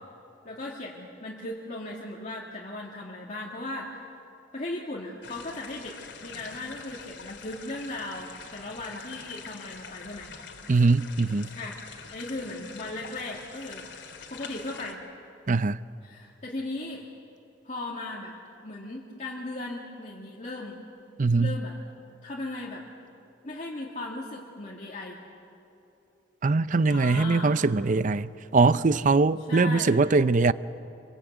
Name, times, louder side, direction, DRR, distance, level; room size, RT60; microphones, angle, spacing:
voice 1, 0.4-4.1 4.5-10.3 11.5-11.8 12.1-13.8 14.3-15.0 16.0-17.0 17.6-18.3 18.6-20.8 21.4-21.8 22.2-22.8 23.4-25.2 26.8-27.6 29.5-30.0, left 2 dB, 40° left, 2.3 m, -37 dB
sound 1, 5.2-14.9, left 5 dB, 90° left, 2.7 m, -45 dB
voice 2, 10.7-11.5 15.5-15.8 21.2-21.6 26.4-30.5, right 3 dB, 45° right, 0.5 m, -22 dB
27.0 x 23.5 x 8.1 m
head